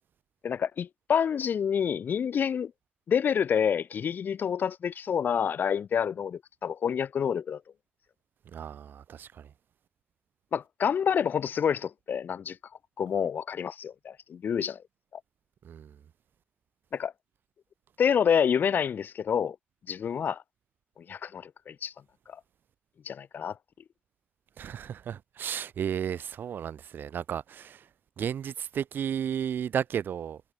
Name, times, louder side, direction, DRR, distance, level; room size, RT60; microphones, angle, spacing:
voice 1, 0.4-2.7 3.1-7.6 10.5-12.6 13.0-14.8 16.9-17.1 18.0-19.6 19.9-20.4 21.1-21.9 22.3-22.4 23.0-23.6, left 7 dB, 65° left, 1.4 m, -28 dB
voice 2, 8.5-9.5 15.6-16.0 24.6-27.9 28.2-30.4, right 8 dB, 70° right, 0.8 m, -33 dB
cardioid pair, 110°, 4 cm